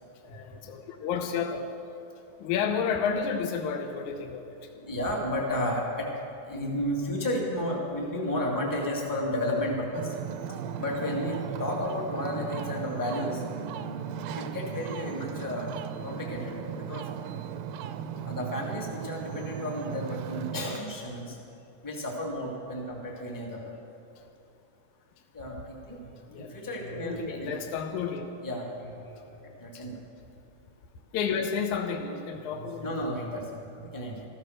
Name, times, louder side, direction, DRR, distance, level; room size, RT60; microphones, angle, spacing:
voice 1, 0.2-1.7 2.4-4.6 12.4-12.5 26.3-26.6 27.0-28.3 29.7-29.9 31.1-32.9, left 6 dB, 70° left, 4 dB, 2.0 m, -31 dB
voice 2, 4.7-6.1 6.5-10.1 10.5-13.4 14.3-15.7 16.0-17.1 18.2-21.4 21.8-23.7 25.3-26.1 26.4-27.5 28.4-30.0 32.5-34.2, left 1 dB, 10° left, -1 dB, 0.9 m, -33 dB
Ocean, 9.9-20.8, right 8 dB, 80° right, 2.2 m, -37 dB
14.5 x 13.5 x 6.6 m, 2.8 s
omnidirectional pair, 4.2 m